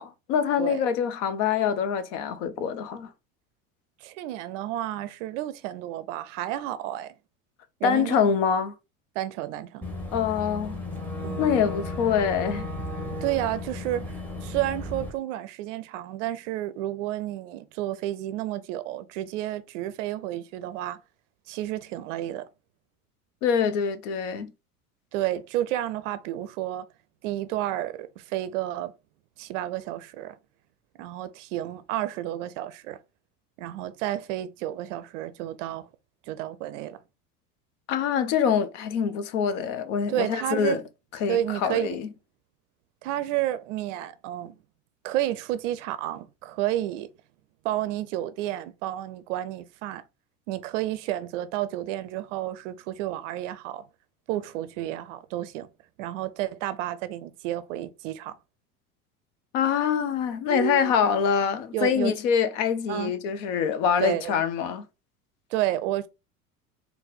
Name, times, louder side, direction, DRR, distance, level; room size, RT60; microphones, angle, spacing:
voice 1, 0.0-3.1 7.8-8.7 10.1-10.8 11.4-12.7 23.4-24.5 37.9-40.8 41.2-42.1 59.5-64.8, left 7 dB, 55° left, 0.7 m, -25 dB
voice 2, 4.0-7.1 7.8-8.2 9.1-9.8 11.2-11.5 13.2-14.2 14.4-21.0 21.5-22.5 25.1-26.9 27.2-28.9 29.4-30.4 31.0-33.0 33.6-35.9 36.3-37.0 40.1-40.8 41.3-42.0 43.0-44.5 45.0-47.1 47.6-50.0 50.5-53.8 54.3-55.7 56.0-58.4 60.5-60.9 61.7-62.1 62.9-63.1 64.0-64.4 65.5-66.1, right 13 dB, 55° right, 0.5 m, -31 dB
Boat Water vehicle / Engine, 9.8-15.1, left 1 dB, 5° left, 1.0 m, -34 dB
4.1 x 2.2 x 3.8 m
figure-of-eight pair, 75°, 45 cm